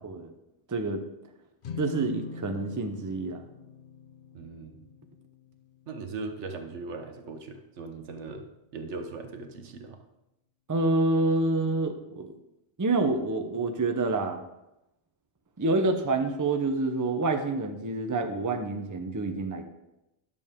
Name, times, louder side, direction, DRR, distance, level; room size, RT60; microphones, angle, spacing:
voice 1, 0.7-1.0 1.8-3.5 10.7-12.3 12.8-14.4 15.6-19.7, right 2 dB, 20° right, 6 dB, 0.6 m, -27 dB
sound 1, 1.6-8.1, left 3 dB, 55° left, 0.8 m, -44 dB
voice 2, 4.3-4.8 5.9-8.5 8.7-10.0, right 3 dB, 90° right, 6 dB, 1.3 m, -39 dB
11.0 x 6.8 x 3.6 m, 0.93 s
omnidirectional pair, 1.2 m